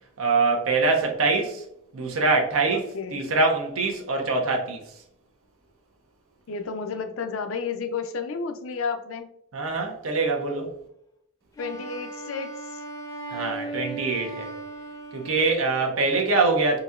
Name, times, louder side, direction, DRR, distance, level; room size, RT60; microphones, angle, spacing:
voice 1, 0.2-1.6 1.9-4.8 9.5-10.7 13.3-14.5 15.1-16.8, right 3 dB, 90° right, 0.8 m, -24 dB
voice 2, 2.7-3.2 6.5-9.3 11.6-12.8, left 5 dB, 75° left, 0.4 m, -32 dB
Wind instrument woodwind instrument, 11.6-15.9, right 2 dB, 15° left, 0.5 m, -37 dB
3.9 x 2.8 x 2.4 m
head